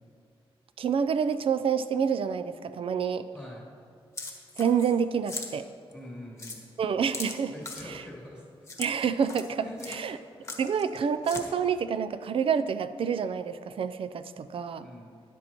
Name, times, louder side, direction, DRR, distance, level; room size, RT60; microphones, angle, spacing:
voice 1, 0.8-3.3 4.6-5.7 6.8-7.5 8.8-10.2 10.6-14.9, right 7 dB, 65° right, 12 dB, 0.4 m, -28 dB
voice 2, 3.3-3.6 5.9-6.7 7.5-8.9 9.6-10.6 14.8-15.2, left 1 dB, 10° right, -6 dB, 2.9 m, -45 dB
sound 1, 4.2-5.0 5.3-5.5 5.9-6.0 6.4-6.6 7.1-7.9 8.7-8.9 9.2-9.5 9.8-10.0 10.4-11.0 11.3-11.4, left 3 dB, 30° left, 1.2 m, -38 dB
12.5 x 10.0 x 3.0 m, 2.3 s
wide cardioid pair, 125°, 10 cm